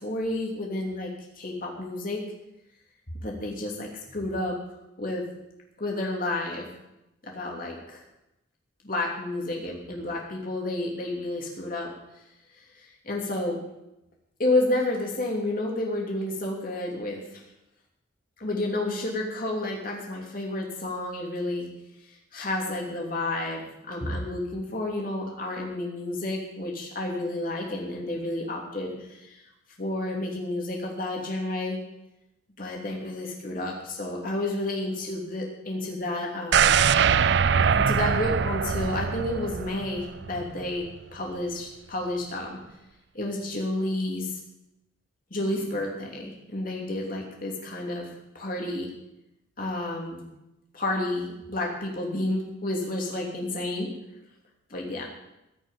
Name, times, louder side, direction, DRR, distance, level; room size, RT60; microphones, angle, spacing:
voice 1, 0.0-1.1 1.4-2.2 3.2-4.6 5.0-5.3 5.8-6.7 7.2-8.0 8.8-11.9 13.0-13.6 14.4-17.4 18.4-21.7 22.3-29.4 29.8-31.8 32.6-37.0 37.7-42.6 43.1-44.3 45.3-48.1 48.3-48.9 49.6-50.3 50.7-53.9 54.7-55.0, left 1 dB, 45° left, -1 dB, 3.0 m, -30 dB
sound 1, 36.5-40.5 40.9-41.0, right 7 dB, 60° right, 0.4 m, -23 dB
15.5 x 6.4 x 9.4 m, 0.91 s
head